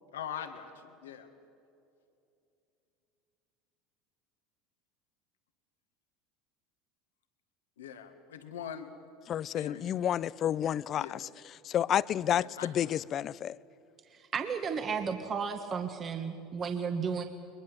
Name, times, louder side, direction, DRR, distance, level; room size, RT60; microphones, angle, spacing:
voice 1, 0.1-1.3 7.8-8.9 9.5-9.9 11.0-11.3 12.3-12.9, left 8 dB, 90° left, 1.8 m, -42 dB
voice 2, 9.3-11.3 11.6-13.6, left 10 dB, 45° left, 0.5 m, -30 dB
voice 3, 14.1-17.2, right 6 dB, 35° right, 1.5 m, -33 dB
22.0 x 21.5 x 7.7 m
hypercardioid pair, 85°, 0 cm